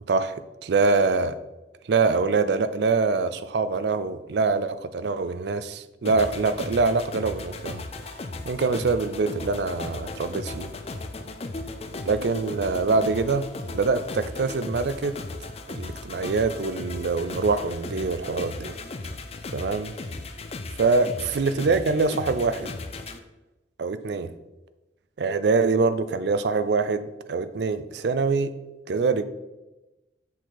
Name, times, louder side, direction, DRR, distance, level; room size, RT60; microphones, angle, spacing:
voice 1, 0.1-1.4 1.9-7.8 8.4-10.7 12.1-13.5 13.7-15.1 15.7-18.7 19.5-19.9 20.8-22.7 23.8-24.3 25.2-28.5 28.9-29.2, right 4 dB, 65° right, 0.4 m, -24 dB
sound 1, 6.0-23.2, left 2 dB, 35° left, 0.4 m, -36 dB
7.3 x 4.4 x 3.9 m
head